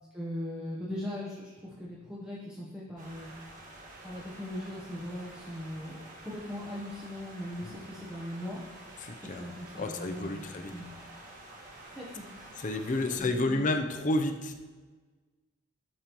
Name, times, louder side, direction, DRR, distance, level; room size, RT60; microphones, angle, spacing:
voice 1, 0.1-3.3 4.0-6.0 6.2-8.6 9.2-10.9 11.9-12.3 13.1-13.6, left 1 dB, 5° right, -6 dB, 1.0 m, -39 dB
sound 1, 3.0-13.2, right 1 dB, 40° right, 1.7 m, -49 dB
voice 2, 9.0-9.4 9.8-10.7 12.6-14.6, left 2 dB, 40° left, 6 dB, 0.6 m, -30 dB
12.0 x 5.3 x 3.0 m, 1.4 s
head